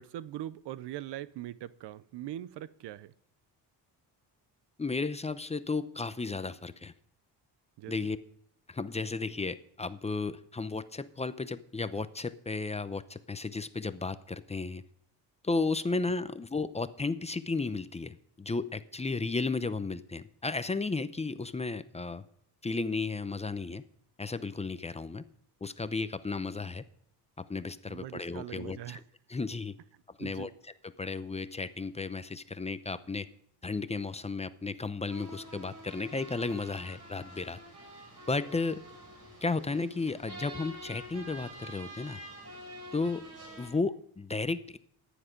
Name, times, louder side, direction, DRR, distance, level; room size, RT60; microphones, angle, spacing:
voice 1, 0.0-3.1 7.8-7.9 27.9-29.0 30.2-30.5, right 13 dB, 75° right, 0.7 m, -41 dB
voice 2, 4.8-6.9 7.9-8.2 8.7-14.8 15.4-22.2 22.6-23.8 24.2-25.2 25.6-26.8 27.4-29.0 29.3-29.8 30.2-30.5 31.0-33.3 33.6-37.6 38.3-38.8 39.4-42.2 42.9-43.2 43.6-44.8, left 3 dB, 15° left, 0.6 m, -34 dB
sound 1, 35.1-43.7, equal, 40° right, 5.7 m, -47 dB
14.5 x 10.0 x 5.2 m
cardioid pair, 115°, 41 cm